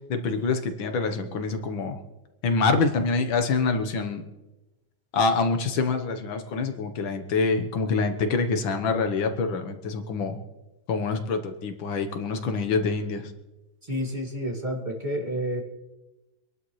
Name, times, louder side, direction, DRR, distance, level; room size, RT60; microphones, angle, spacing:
voice 1, 0.1-2.0 2.4-4.2 5.1-10.4 10.9-13.3, left 4 dB, 75° left, 7 dB, 1.9 m, -26 dB
voice 2, 13.9-15.6, equal, 25° right, -1 dB, 2.2 m, -29 dB
25.0 x 11.5 x 3.2 m, 1.0 s
omnidirectional pair, 2.2 m